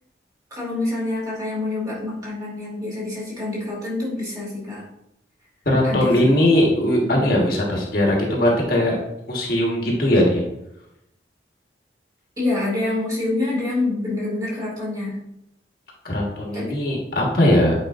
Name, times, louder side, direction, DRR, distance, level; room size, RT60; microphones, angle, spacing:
voice 1, 0.5-4.8 5.8-6.2 7.1-7.3 12.4-15.2 16.5-16.8, left 2 dB, 20° right, -5 dB, 2.3 m, -26 dB
voice 2, 5.6-9.0 9.3-10.4 16.0-17.7, left 1 dB, 55° left, -2 dB, 1.4 m, -19 dB
8.7 x 4.8 x 2.5 m, 0.82 s
head